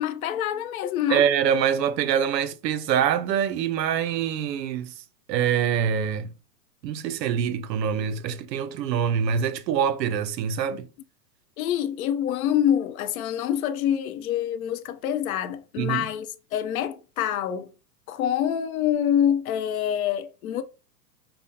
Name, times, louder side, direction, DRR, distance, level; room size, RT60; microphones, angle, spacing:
voice 1, 0.0-1.2 11.6-16.3 16.5-17.7 18.1-20.6, left 10 dB, 55° left, 0.6 m, -26 dB
voice 2, 1.1-4.9 5.3-6.3 6.8-10.9 15.8-16.0, right 8 dB, 75° right, 0.6 m, -25 dB
5.2 x 2.1 x 2.7 m
hypercardioid pair, 125°, 50 cm